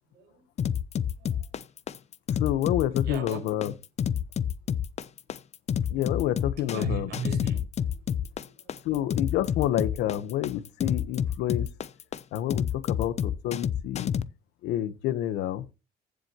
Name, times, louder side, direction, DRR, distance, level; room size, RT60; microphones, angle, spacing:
voice 1, 0.1-0.4 1.2-1.6 3.0-3.4 6.6-9.4, right 7 dB, 75° right, 4.9 m, -40 dB
sound 1, 0.6-14.2, left 8 dB, 40° left, 0.7 m, -29 dB
voice 2, 2.4-3.7 5.9-7.1 8.8-11.7 12.3-14.1 14.6-15.6, left 12 dB, 85° left, 1.1 m, -28 dB
15.0 x 7.7 x 3.0 m
cardioid pair, 110°, 17 cm